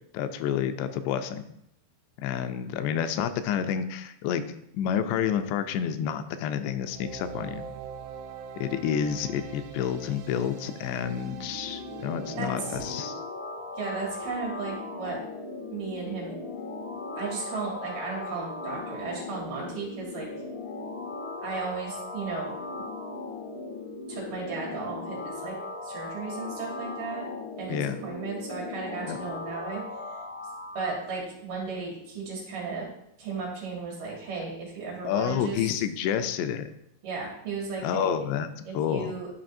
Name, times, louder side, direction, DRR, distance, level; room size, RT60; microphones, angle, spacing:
voice 1, 0.1-1.4 2.2-7.6 8.6-13.2 27.7-28.0 29.1-29.2 35.0-36.7 37.8-38.5 38.7-39.1, left 8 dB, 90° left, 10 dB, 2.6 m, -29 dB
sound 1, 6.7-13.0, right 7 dB, 80° right, 2.1 m, -43 dB
sound 2, 11.1-31.0, left 3 dB, 70° left, 2.7 m, -38 dB
voice 2, 12.4-12.8 13.8-15.2 15.7-16.3 17.1-20.3 21.4-22.5 24.1-25.5 25.8-27.2 27.6-29.8 30.7-32.9 33.2-35.6 37.0-38.2 38.6-39.3, right 4 dB, 60° right, -4 dB, 3.3 m, -35 dB
11.0 x 4.9 x 2.6 m, 0.76 s
omnidirectional pair, 4.7 m